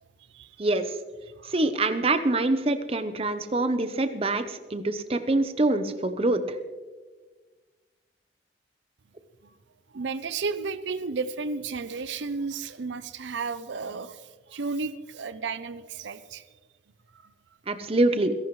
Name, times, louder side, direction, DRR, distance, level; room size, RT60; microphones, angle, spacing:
voice 1, 0.3-0.7 1.4-1.5 9.4-9.5 9.9-16.4 17.2-17.3, right 4 dB, 80° right, 13 dB, 0.6 m, -33 dB
voice 2, 1.5-6.6 17.7-18.3, right 2 dB, 30° right, 9 dB, 0.8 m, -25 dB
27.5 x 11.0 x 3.2 m, 1.4 s
head